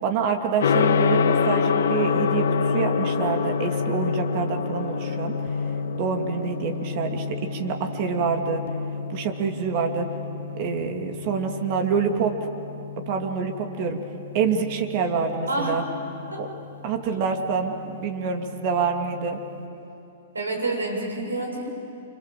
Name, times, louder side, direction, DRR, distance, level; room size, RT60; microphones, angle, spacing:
voice 1, 0.0-5.3 6.0-8.6 9.1-10.1 10.5-12.5 13.1-14.0 14.3-15.8 16.4-16.5 16.8-19.4, right 6 dB, 45° right, 4 dB, 2.7 m, -26 dB
Gong, 0.6-19.6, left 6 dB, 70° left, 1.6 m, -28 dB
voice 2, 20.3-21.7, right 2 dB, 90° right, 1 dB, 6.9 m, -28 dB
28.5 x 26.0 x 7.7 m, 2.8 s
hypercardioid pair, 115°, 0 cm